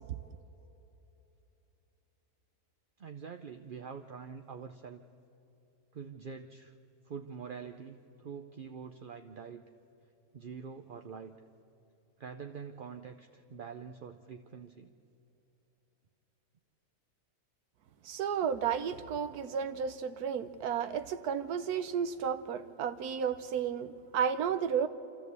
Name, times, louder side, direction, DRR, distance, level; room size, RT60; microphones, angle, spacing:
voice 1, 3.0-5.0 5.9-6.7 7.1-9.6 10.3-11.4 12.2-14.9, right 6 dB, 45° right, 5 dB, 0.7 m, -45 dB
voice 2, 18.0-24.9, right 7 dB, 85° right, 10 dB, 1.3 m, -32 dB
27.0 x 14.0 x 8.2 m, 2.9 s
omnidirectional pair, 1.6 m